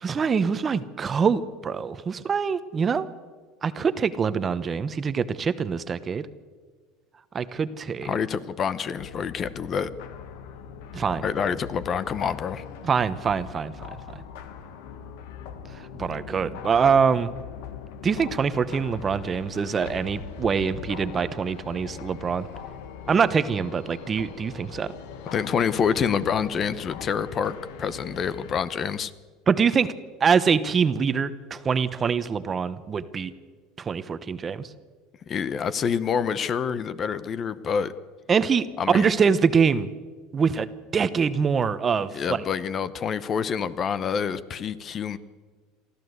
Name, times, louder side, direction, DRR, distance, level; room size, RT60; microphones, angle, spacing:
voice 1, 0.0-3.1 3.6-6.3 7.3-8.1 10.9-11.3 12.8-13.7 16.0-17.3 18.0-22.5 23.1-24.9 29.5-29.9 30.2-33.3 33.8-34.7 38.3-39.9 40.3-40.7 40.9-42.4, right 6 dB, 30° right, 13 dB, 1.0 m, -24 dB
voice 2, 8.0-9.9 11.2-12.6 25.3-27.5 27.8-29.1 35.3-37.9 38.8-39.1 42.1-45.2, left 7 dB, 35° left, 16 dB, 0.9 m, -27 dB
sound 1, 9.0-28.6, left 7 dB, 80° left, 1.5 m, -41 dB
23.5 x 14.0 x 8.1 m, 1.5 s
supercardioid pair, 115°, 0 cm